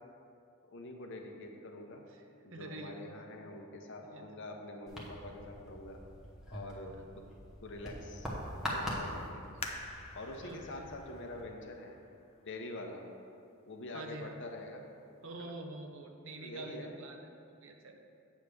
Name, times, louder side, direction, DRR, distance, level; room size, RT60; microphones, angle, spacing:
voice 1, 0.7-2.0 2.4-6.0 6.5-7.2 7.6-8.3 8.6-9.4 10.1-12.0 12.4-13.0 13.7-14.8 15.4-15.5 16.4-16.9, left 2 dB, 55° left, 2 dB, 0.8 m, -45 dB
voice 2, 2.5-3.1 4.0-4.3 6.9-7.0 10.4-10.9 13.9-14.4 15.2-18.0, right 2 dB, 60° right, 4 dB, 0.7 m, -47 dB
sound 1, 4.9-11.4, equal, ahead, 1.1 m, -43 dB
sound 2, 9.6-13.0 13.6-13.7 14.3-14.7 15.1-15.2, left 3 dB, 25° left, 0.5 m, -48 dB
8.1 x 3.5 x 6.6 m, 2.5 s
head